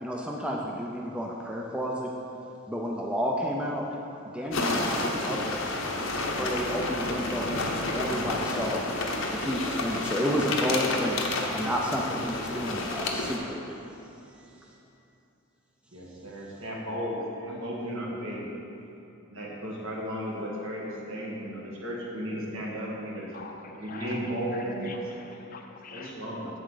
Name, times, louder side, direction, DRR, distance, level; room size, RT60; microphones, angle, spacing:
voice 1, 0.0-2.1 2.7-3.8 4.3-5.6 6.3-8.9 9.3-11.2 11.5-13.6, equal, 5° right, -2 dB, 0.4 m, -31 dB
sound 1, 4.5-13.4, left 2 dB, 65° left, 0.8 m, -30 dB
voice 2, 15.9-18.5 19.3-23.4 23.8-25.1 25.9-26.5, equal, 70° right, -3 dB, 1.6 m, -34 dB
voice 3, 23.3-24.2 24.5-26.2, left 4 dB, 40° left, 3 dB, 0.6 m, -44 dB
8.0 x 7.4 x 3.9 m, 2.9 s
head